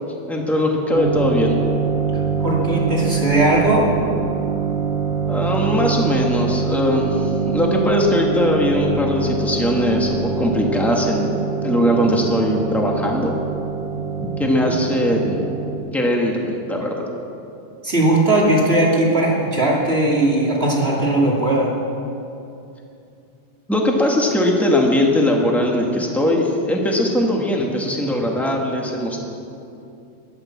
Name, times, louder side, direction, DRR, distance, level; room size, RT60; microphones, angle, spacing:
voice 1, 0.3-1.6 5.2-13.3 14.2-15.5 15.9-17.1 23.7-29.2, left 1 dB, ahead, 0 dB, 0.6 m, -20 dB
sound 1, 0.9-15.8, right 5 dB, 55° right, 2.2 m, -24 dB
voice 2, 2.1-3.9 14.7-14.8 17.8-21.7, right 1 dB, 20° right, -3 dB, 2.2 m, -18 dB
20.5 x 8.2 x 7.3 m, 2.7 s
omnidirectional pair, 3.3 m